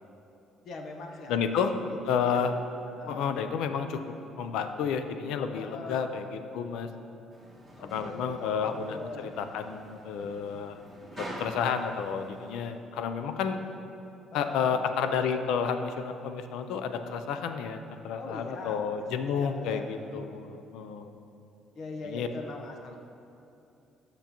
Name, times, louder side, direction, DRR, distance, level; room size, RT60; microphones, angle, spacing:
voice 1, 0.6-2.4 3.0-3.2 5.5-6.1 7.8-9.3 10.2-10.4 14.3-14.8 18.2-18.9 19.3-20.2 20.5-20.6 21.8-23.0, left 2 dB, 60° left, 3 dB, 0.8 m, -42 dB
voice 2, 1.3-1.7 2.1-2.5 3.1-4.0 4.4-6.9 7.8-10.8 11.2-13.6 14.3-21.1 22.0-22.3, left 6 dB, 80° left, 8 dB, 0.4 m, -31 dB
sound 1, 7.3-12.7, right 1 dB, 20° left, 1.6 m, -46 dB
10.5 x 6.7 x 2.9 m, 2.8 s
cardioid pair, 125°, 0 cm